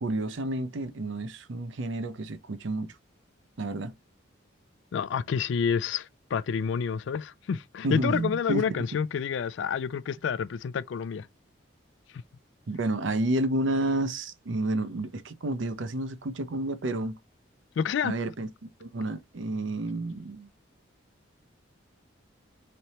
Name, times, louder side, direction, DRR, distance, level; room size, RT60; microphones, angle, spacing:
voice 1, 0.0-2.9 3.6-3.9 7.8-8.9 12.7-17.2 18.0-18.5 18.8-20.5, right 2 dB, 65° right, 0.6 m, -30 dB
voice 2, 4.9-11.3 17.8-18.1, left 6 dB, 65° left, 0.3 m, -29 dB
3.2 x 2.8 x 4.1 m
head